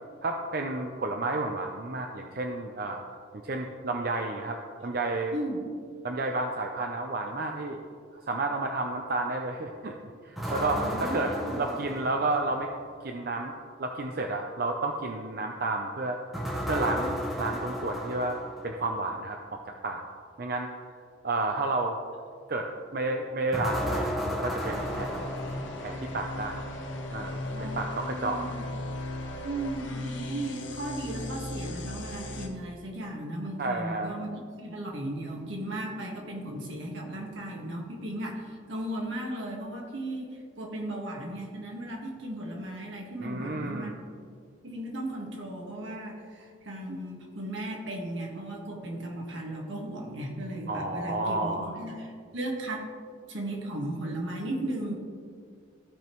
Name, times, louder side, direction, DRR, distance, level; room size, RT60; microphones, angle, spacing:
voice 1, 0.2-3.0 3.4-5.4 6.0-7.8 8.3-9.9 10.2-12.7 13.0-13.5 13.8-16.2 16.7-18.4 18.6-20.0 20.4-20.7 21.2-22.0 22.5-25.4 25.8-26.7 27.1-28.4 33.6-34.2 43.2-43.9 50.7-51.7, right 2 dB, 50° right, 3 dB, 0.5 m, -31 dB
sound 1, 10.4-12.7 16.3-18.8 23.5-26.1, equal, ahead, 1.0 m, -33 dB
voice 2, 10.7-11.6 27.5-28.6 29.4-34.3 34.6-44.0 44.6-52.9 53.3-54.9, right 1 dB, 75° right, -1 dB, 1.6 m, -36 dB
sound 2, 24.6-32.5, left 1 dB, 80° left, 1.1 m, -37 dB
15.0 x 5.1 x 3.0 m, 2.1 s
head